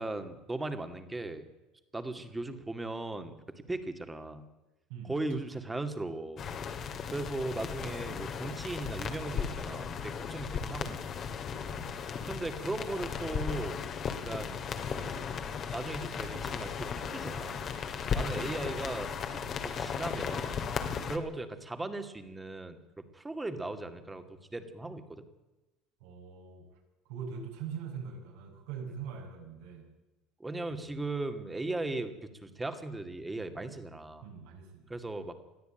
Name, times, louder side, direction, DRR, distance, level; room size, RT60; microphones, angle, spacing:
voice 1, 0.0-1.4 1.9-4.4 5.0-6.5 7.1-11.0 12.2-13.8 14.1-14.6 14.9-15.3 15.7-17.7 18.1-20.7 21.1-25.2 30.4-32.1 32.4-34.3 34.9-35.3, right 2 dB, 10° right, 8 dB, 2.3 m, -38 dB
voice 2, 4.9-5.4 11.7-12.1 26.0-26.6 27.1-29.9 30.7-30.9 34.2-34.9, right 6 dB, 85° right, 0 dB, 7.4 m, -43 dB
sound 1, 6.4-21.2, left 7 dB, 40° left, 2.4 m, -36 dB
21.5 x 14.0 x 9.0 m, 1.0 s
supercardioid pair, 115°, 0 cm